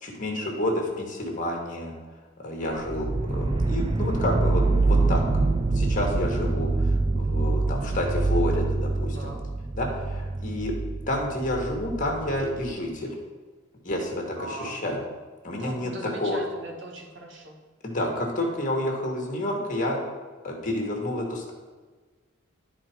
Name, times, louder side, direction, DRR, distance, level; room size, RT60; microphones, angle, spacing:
voice 1, 0.0-1.9 2.4-5.2 5.7-9.3 9.8-10.7 11.1-13.2 13.8-15.0 15.4-15.9 16.2-16.4 17.8-20.0 20.4-21.5, left 1 dB, 40° left, 1 dB, 1.9 m, -29 dB
sound 1, 2.8-12.7, right 3 dB, 25° right, 0.4 m, -25 dB
voice 2, 14.4-14.8 15.6-17.6, right 1 dB, 65° right, 1 dB, 1.7 m, -39 dB
12.0 x 4.6 x 4.6 m, 1.4 s
head